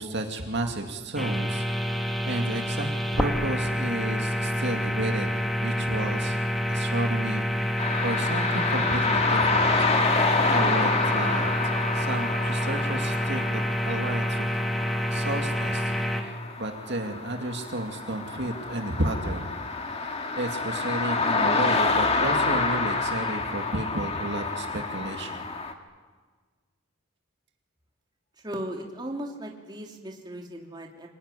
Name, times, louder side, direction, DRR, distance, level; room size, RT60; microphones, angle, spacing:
voice 1, 0.0-5.3 5.6-6.4 6.7-9.7 10.5-14.5 15.1-19.5 20.0-20.1 20.4-25.5, right 1 dB, 55° right, 3 dB, 2.4 m, -32 dB
sound 1, 1.2-16.2, equal, ahead, 1.8 m, -28 dB
sound 2, 7.8-25.7, left 3 dB, 30° left, 2.0 m, -28 dB
voice 2, 28.4-31.1, right 1 dB, 20° right, 0 dB, 3.0 m, -37 dB
26.5 x 19.5 x 9.9 m, 1.5 s
head